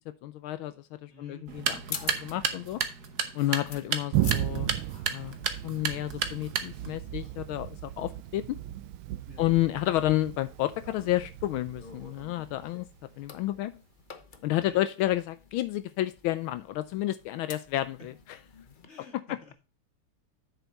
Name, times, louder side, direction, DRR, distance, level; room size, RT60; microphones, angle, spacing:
voice 1, 0.2-2.8 3.3-8.6 9.4-12.9 13.2-13.7 14.4-18.1, left 15 dB, 80° left, 13 dB, 1.3 m, -31 dB
voice 2, 1.1-1.5 9.3-9.4 14.6-14.8 18.9-19.5, left 3 dB, 30° left, 2 dB, 2.6 m, -50 dB
sound 1, 1.5-18.9, left 5 dB, 60° left, 0.5 m, -49 dB
sound 2, 1.5-7.0, right 7 dB, 55° right, 1.3 m, -33 dB
Thunder, 4.1-13.5, right 13 dB, 80° right, 1.4 m, -35 dB
8.1 x 6.8 x 4.0 m, 0.32 s
omnidirectional pair, 2.4 m